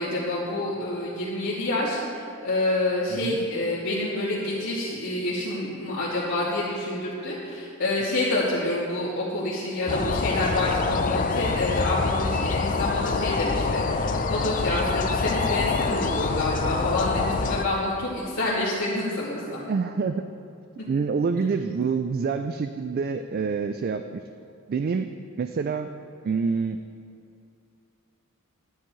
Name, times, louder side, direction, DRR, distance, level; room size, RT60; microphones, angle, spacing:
voice 1, 0.0-19.6 20.8-20.9, left 2 dB, 65° left, -14 dB, 2.9 m, -28 dB
sound 1, 9.9-17.7, left 4 dB, 40° left, 0.4 m, -26 dB
voice 2, 19.7-20.3 20.9-24.2 24.7-25.9 26.2-26.8, right 5 dB, 45° right, 8 dB, 0.3 m, -27 dB
13.0 x 10.5 x 3.2 m, 2.5 s
head